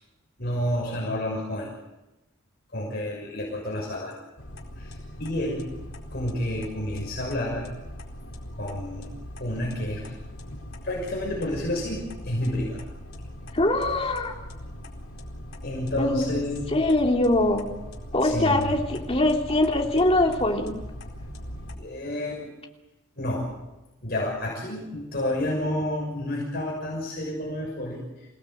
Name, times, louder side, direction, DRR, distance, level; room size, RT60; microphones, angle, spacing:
voice 1, 0.4-1.7 2.7-4.2 4.8-5.7 6.1-7.7 8.6-9.1 9.4-10.1 10.8-12.8 15.6-16.7 18.2-18.6 21.8-22.5 23.1-23.5 24.0-28.3, left 1 dB, 50° left, -2 dB, 6.5 m, -30 dB
sound 1, 4.4-21.8, equal, 85° left, 4.5 m, -40 dB
voice 2, 13.5-14.3 16.0-16.3 16.7-17.7 18.1-20.7, left 1 dB, 30° left, 1 dB, 3.1 m, -22 dB
27.5 x 17.5 x 8.0 m, 1.0 s
head